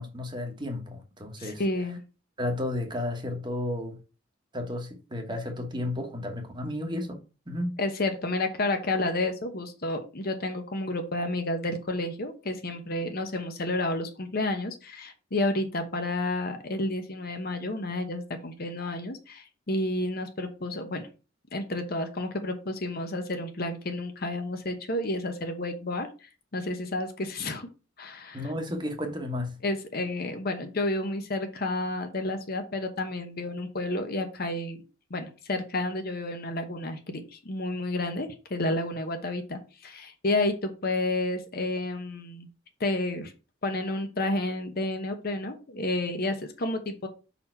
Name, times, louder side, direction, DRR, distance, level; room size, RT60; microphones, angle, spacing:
voice 1, 0.0-1.6 2.4-4.0 4.5-7.2 7.5-7.8 28.3-29.6, left 1 dB, 25° right, 1.2 m, -32 dB
voice 2, 1.4-2.0 7.8-21.1 21.5-27.7 28.0-28.5 29.6-34.8 35.1-42.5 42.8-43.3 43.6-47.1, left 2 dB, 50° left, 0.9 m, -31 dB
5.7 x 4.2 x 4.4 m
head